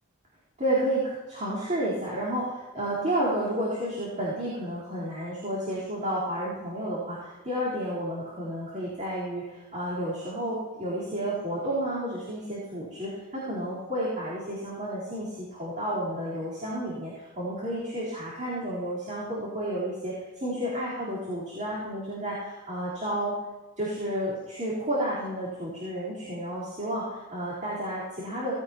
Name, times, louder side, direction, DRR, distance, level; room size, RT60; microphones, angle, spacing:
voice 1, 0.6-23.3 23.8-28.5, right 1 dB, 35° right, -9 dB, 4.1 m, -31 dB
18.0 x 16.0 x 3.0 m, 1.2 s
head